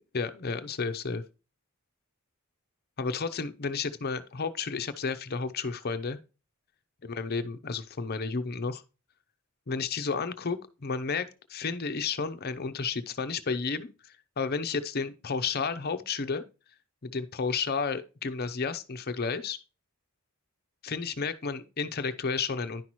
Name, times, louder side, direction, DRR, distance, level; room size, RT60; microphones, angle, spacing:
voice 1, 0.1-1.2 3.0-6.2 7.0-8.8 9.7-16.4 17.0-19.6 20.8-22.8, left 5 dB, 45° left, 0.7 m, -32 dB
10.5 x 5.7 x 3.0 m
head